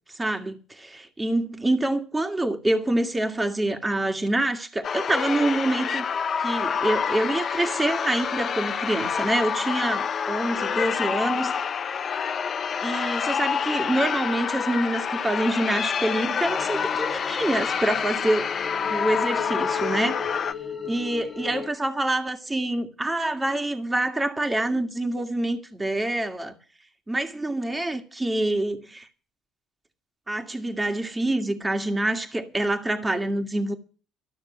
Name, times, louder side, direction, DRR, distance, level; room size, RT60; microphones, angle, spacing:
voice 1, 0.2-6.1 6.4-11.7 12.8-18.5 18.8-20.2 20.9-26.6 27.1-29.1 30.3-33.7, right 1 dB, 15° right, 1.9 m, -26 dB
sound 1, 4.8-20.5, left 7 dB, 45° left, 0.9 m, -27 dB
sound 2, 16.4-21.7, left 5 dB, 30° left, 1.5 m, -35 dB
13.5 x 6.5 x 9.8 m
hypercardioid pair, 60°, 0 cm